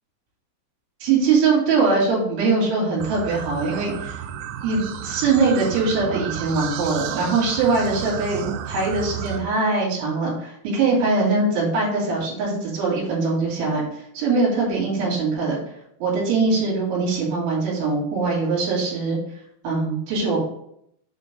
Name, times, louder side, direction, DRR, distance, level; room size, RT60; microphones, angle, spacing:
voice 1, 1.0-4.2 4.6-13.8 14.1-15.6 16.0-19.2 19.6-20.4, right 4 dB, 70° right, -4 dB, 4.7 m, -22 dB
sound 1, 3.0-9.4, right 9 dB, 85° right, 3.1 m, -32 dB
8.0 x 3.8 x 5.2 m, 0.72 s
omnidirectional pair, 5.9 m